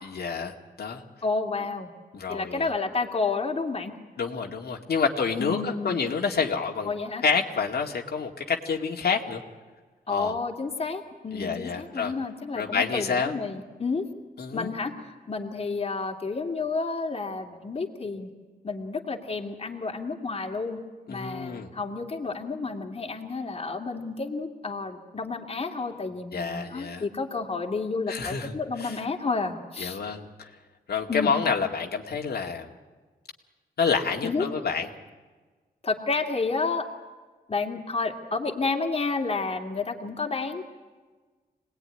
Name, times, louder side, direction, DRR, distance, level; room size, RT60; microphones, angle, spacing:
voice 1, 0.0-1.0 2.1-2.7 4.2-6.9 7.2-9.4 10.1-10.3 11.3-12.1 12.6-13.3 14.4-14.7 21.1-21.7 26.3-27.0 28.1-29.0 29.8-30.5 30.9-32.7 33.8-34.9, left 5 dB, 80° left, 1 dB, 2.2 m, -28 dB
voice 2, 1.2-1.9 2.3-4.0 5.4-5.9 6.8-7.2 10.1-14.0 14.5-14.9 15.3-18.3 18.6-20.8 21.1-30.0 31.1-31.3 34.2-34.5 35.8-36.9 37.5-40.6, left 4 dB, 35° left, 2 dB, 2.5 m, -30 dB
26.5 x 19.5 x 10.0 m, 1.3 s
wide cardioid pair, 135°, 16 cm